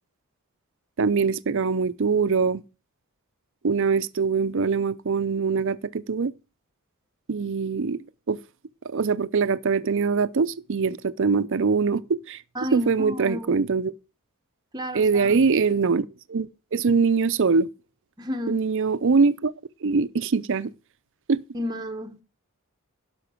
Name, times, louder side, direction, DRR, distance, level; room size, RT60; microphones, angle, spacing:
voice 1, 1.0-2.6 3.6-6.3 7.3-8.4 8.8-12.4 12.7-13.9 14.9-17.7 18.5-19.5 19.8-20.7 21.3-21.4, right 5 dB, 60° right, 0.6 m, -23 dB
voice 2, 12.5-13.5 14.7-15.4 18.2-18.6 21.5-22.2, left 1 dB, 20° right, 0.9 m, -32 dB
12.0 x 5.9 x 6.1 m
head